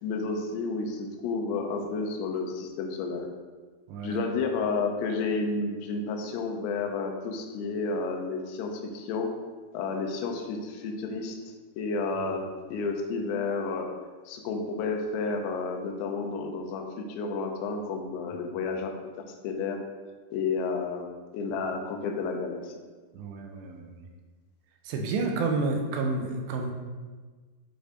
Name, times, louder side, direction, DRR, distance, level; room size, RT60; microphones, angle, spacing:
voice 1, 0.0-3.3 4.0-9.3 9.7-11.4 11.8-13.9 14.3-18.9 19.4-19.8 20.3-21.1 21.3-22.7, left 4 dB, 85° left, 3 dB, 2.7 m, -31 dB
voice 2, 3.9-4.2 23.1-24.1 24.9-26.7, right 3 dB, 85° right, 2 dB, 2.9 m, -30 dB
8.7 x 4.9 x 2.6 m, 1.4 s
omnidirectional pair, 4.8 m